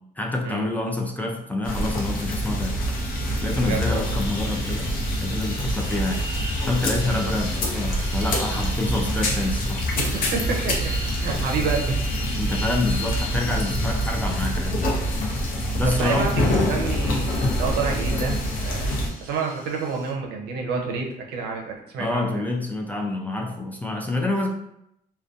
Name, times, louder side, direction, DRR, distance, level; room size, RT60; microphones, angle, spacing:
voice 1, 0.2-2.8 3.4-4.9 5.2-6.3 6.7-9.9 12.4-14.9 15.8-16.4 22.0-24.5, left 2 dB, 10° left, 1 dB, 0.3 m, -27 dB
sound 1, 1.6-19.1, equal, 55° left, 0.6 m, -26 dB
sound 2, 1.9-20.1, left 1 dB, 35° left, 1.3 m, -38 dB
voice 2, 3.6-4.1 7.1-7.2 10.0-12.3 15.8-18.9 19.2-22.5, right 4 dB, 75° right, 1 dB, 0.6 m, -29 dB
2.5 x 2.2 x 2.4 m, 0.80 s
cardioid pair, 110°, 17 cm